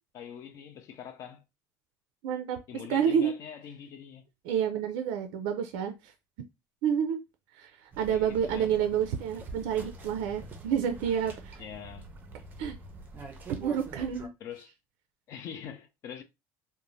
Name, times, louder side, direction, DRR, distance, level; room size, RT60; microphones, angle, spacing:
voice 1, 0.1-1.4 2.7-4.2 8.1-8.7 11.6-12.1 14.4-14.7 15.3-16.2, left 8 dB, 40° left, 0.4 m, -43 dB
voice 2, 2.2-2.6 2.9-3.3 4.5-6.1 6.8-7.2 7.6-7.7 8.0-11.6 12.6-12.7 13.5-14.3, right 8 dB, 80° right, 0.4 m, -29 dB
sound 1, 7.9-14.3, right 3 dB, 25° right, 0.5 m, -45 dB
2.5 x 2.0 x 3.1 m
cardioid pair, 165°, 8 cm